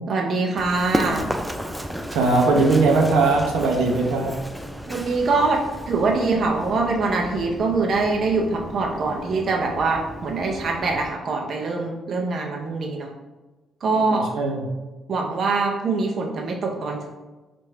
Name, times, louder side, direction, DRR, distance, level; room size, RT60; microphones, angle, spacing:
voice 1, 0.1-1.3 4.9-13.1 13.8-14.3 15.1-17.0, right 3 dB, 55° right, 0 dB, 0.5 m, -23 dB
Run, 0.6-11.1, equal, ahead, 0.3 m, -33 dB
voice 2, 2.1-4.3 14.1-14.6, right 3 dB, 90° right, 0 dB, 0.7 m, -19 dB
3.3 x 2.5 x 4.5 m, 1.2 s
cardioid pair, 90°, 0 cm